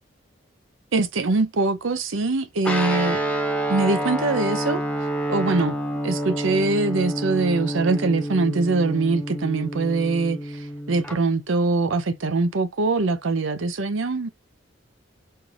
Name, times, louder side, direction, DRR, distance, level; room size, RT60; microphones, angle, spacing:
voice 1, 0.9-3.2 3.7-4.8 5.3-5.7 6.0-14.3, right 3 dB, 80° right, 0.7 m, -23 dB
Guitar, 2.6-11.2, right 1 dB, 5° left, 0.7 m, -28 dB
4.4 x 2.4 x 3.3 m
head